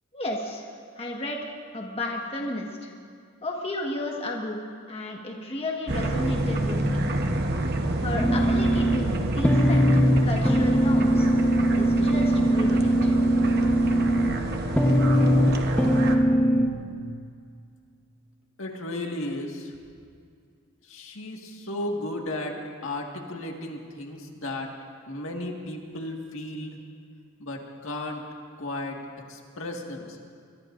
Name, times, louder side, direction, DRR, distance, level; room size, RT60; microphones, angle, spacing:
voice 1, 0.1-0.6 1.0-2.9 3.4-4.6 4.9-7.1 8.0-11.3 11.7-13.1, left 1 dB, 30° left, -1 dB, 1.5 m, -33 dB
sound 1, 5.9-16.2, right 1 dB, 50° right, 1.1 m, -28 dB
sound 2, 8.2-16.7, right 1 dB, 10° left, 1.0 m, -21 dB
voice 2, 18.6-19.7 20.9-22.6 22.8-24.7 25.1-26.8 27.4-28.2 28.6-29.0 29.3-30.2, left 1 dB, 70° left, 1 dB, 1.9 m, -34 dB
24.0 x 22.5 x 2.6 m, 2.3 s
head